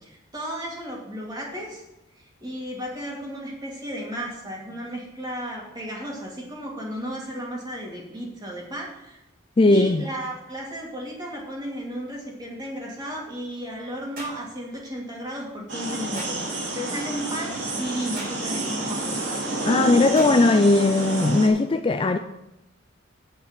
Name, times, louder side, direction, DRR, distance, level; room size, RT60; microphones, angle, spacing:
voice 1, 0.0-1.8 2.2-9.2 9.6-19.2, equal, 20° right, 2.6 m, -34 dB
voice 2, 9.6-10.0 19.7-22.2, left 2 dB, 25° left, 0.3 m, -18 dB
sound 1, 14.1-14.4 16.1-16.4 18.1-18.4 20.1-20.4, right 1 dB, 45° right, 3.3 m, -38 dB
sound 2, 15.7-21.5, right 2 dB, 60° right, 2.6 m, -29 dB
8.9 x 5.9 x 7.5 m
head